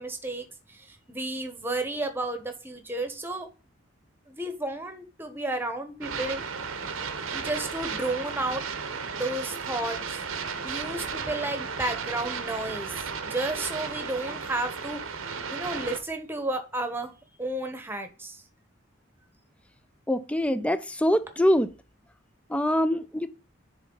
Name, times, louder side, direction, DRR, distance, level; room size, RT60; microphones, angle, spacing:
voice 1, 0.0-3.5 4.3-6.4 7.3-8.6 9.1-10.2 10.6-15.0 15.5-17.1 17.4-18.4, right 2 dB, 10° right, 1.1 m, -32 dB
sound 1, 6.0-16.0, right 5 dB, 90° right, 1.0 m, -34 dB
voice 2, 20.1-21.7 22.5-23.3, equal, 5° left, 0.4 m, -24 dB
10.0 x 3.9 x 3.9 m
head